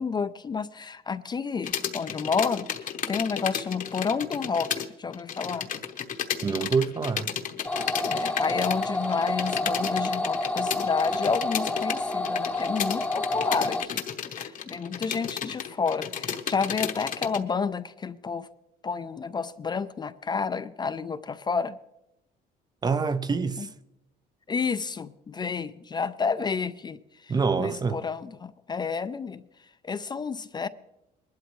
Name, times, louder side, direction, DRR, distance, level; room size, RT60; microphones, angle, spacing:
voice 1, 0.0-5.7 8.1-14.0 14.3-18.5 18.8-21.8 23.6-23.7 24.5-29.4 29.8-30.7, left 5 dB, 25° left, 0.4 m, -30 dB
sound 1, 1.6-4.9 5.1-17.4, left 8 dB, 50° left, 1.0 m, -33 dB
voice 2, 6.4-7.3 22.8-23.7 27.3-28.0, right 5 dB, 25° right, 0.5 m, -26 dB
sound 2, 7.6-13.8, left 2 dB, 10° left, 0.8 m, -29 dB
20.5 x 12.0 x 3.1 m
cardioid pair, 110°, 17 cm